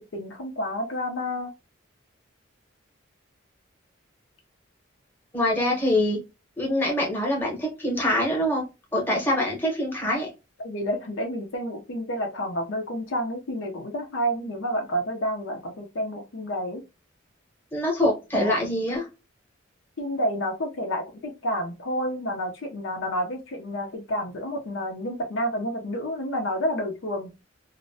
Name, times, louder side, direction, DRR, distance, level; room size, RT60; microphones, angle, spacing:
voice 1, 0.0-1.5 10.6-16.8 18.4-18.5 20.0-27.3, equal, 75° left, 3 dB, 0.5 m, -29 dB
voice 2, 5.3-6.2 6.6-8.6 8.9-10.3 17.7-19.1, left 1 dB, 10° left, -2 dB, 0.8 m, -24 dB
2.5 x 2.0 x 2.5 m, 0.27 s
head